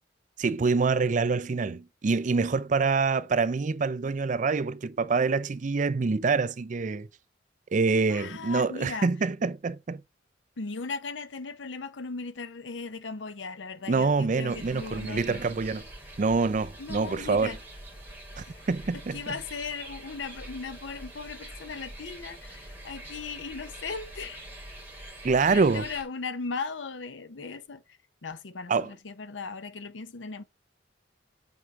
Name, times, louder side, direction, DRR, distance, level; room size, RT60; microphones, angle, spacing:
voice 1, 0.4-7.1 7.7-10.0 13.9-15.8 16.2-17.6 18.4-19.2 25.2-25.9 28.7-28.9, right 4 dB, 45° right, 0.4 m, -26 dB
voice 2, 8.1-9.1 10.6-15.6 16.8-17.6 19.1-24.5 25.5-27.8 28.2-30.4, left 4 dB, 85° left, 0.7 m, -37 dB
sound 1, 14.5-26.0, right 1 dB, 10° right, 3.0 m, -44 dB
8.1 x 4.6 x 3.6 m
head